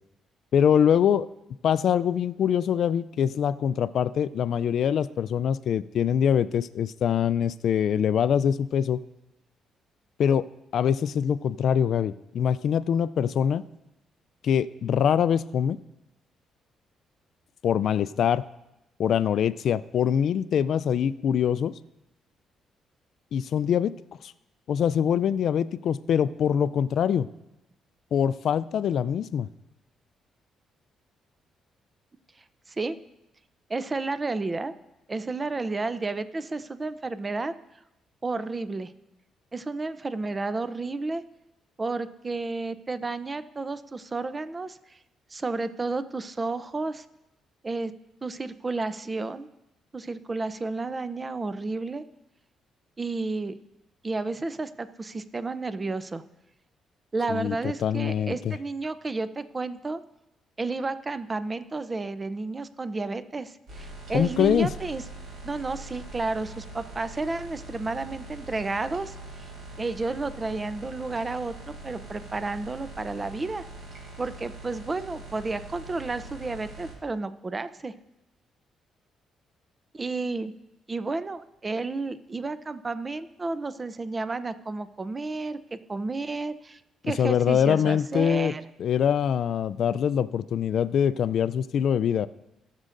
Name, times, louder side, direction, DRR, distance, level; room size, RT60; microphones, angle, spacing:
voice 1, 0.5-1.3 1.6-9.0 10.2-10.5 10.7-13.6 14.4-15.8 17.6-18.4 19.0-21.7 23.3-23.9 24.2-24.3 24.7-27.3 28.1-29.5 57.3-58.6 64.1-64.7 87.0-88.5 88.8-92.3, left 8 dB, 65° left, 16 dB, 0.3 m, -24 dB
voice 2, 33.7-34.7 35.1-37.5 38.2-38.9 39.5-41.2 41.8-45.0 45.3-47.0 47.6-47.9 48.2-49.5 49.9-52.0 53.0-53.6 54.0-56.2 57.1-60.0 60.6-65.0 65.4-69.5 69.8-73.6 74.2-77.9 79.9-80.5 80.9-88.6, right 3 dB, 25° right, 13 dB, 0.5 m, -31 dB
sound 1, 63.7-76.9, right 2 dB, 70° right, 3.5 m, -43 dB
18.5 x 6.4 x 2.6 m, 0.93 s
cardioid pair, 90°, 0 cm